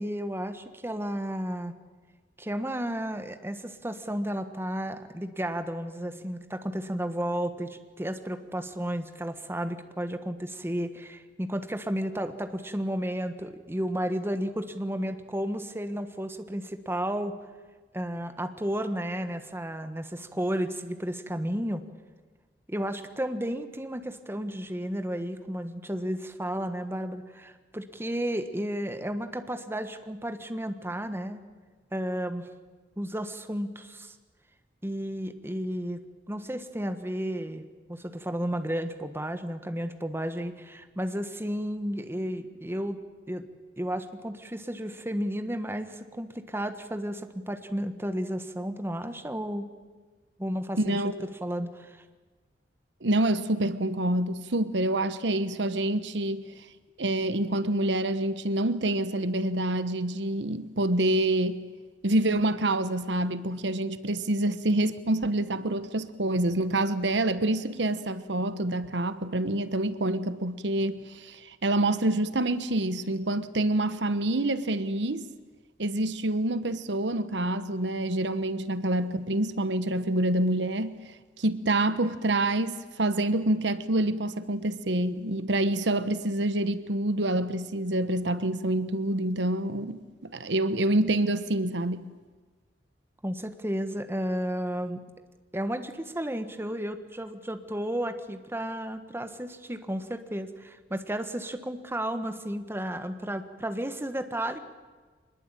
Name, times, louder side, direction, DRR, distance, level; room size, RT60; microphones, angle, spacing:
voice 1, 0.0-1.8 2.4-17.3 17.9-21.8 22.7-31.4 31.9-32.5 33.0-34.1 34.8-43.0 43.3-43.4 43.8-49.7 50.4-51.1 51.4-52.0 93.2-95.0 95.5-104.6, equal, 15° right, 1.5 m, -33 dB
voice 2, 50.8-51.1 53.0-56.5 57.0-61.6 62.0-75.3 75.8-81.0 81.4-92.0, right 1 dB, 75° right, 1.1 m, -27 dB
24.5 x 21.0 x 9.0 m
head